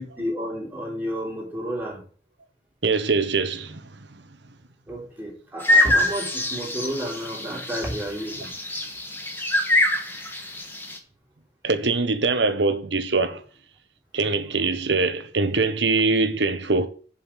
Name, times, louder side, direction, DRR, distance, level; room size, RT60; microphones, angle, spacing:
voice 1, 0.0-2.0 4.9-8.5, equal, 10° right, 3.2 m, -31 dB
voice 2, 2.8-3.8 11.6-13.4 14.1-16.9, right 3 dB, 85° right, 1.2 m, -23 dB
sound 1, 5.6-11.0, left 1 dB, 10° left, 1.4 m, -24 dB
7.3 x 5.4 x 7.3 m
head